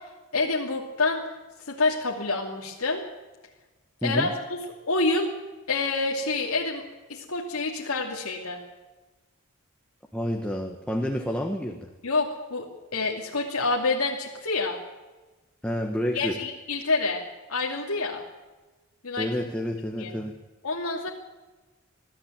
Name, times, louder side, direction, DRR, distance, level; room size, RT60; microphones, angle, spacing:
voice 1, 0.3-1.2 1.7-3.0 4.0-4.6 4.9-5.3 5.7-6.8 7.1-8.6 12.0-14.8 16.1-17.2 17.5-18.2 19.0-19.3 20.0-20.1 20.6-21.1, left 3 dB, 85° left, -1 dB, 2.6 m, -27 dB
voice 2, 4.0-4.3 10.1-11.9 15.6-16.4 19.2-20.3, equal, 5° left, 2 dB, 1.5 m, -29 dB
21.5 x 13.5 x 9.1 m, 1.2 s
head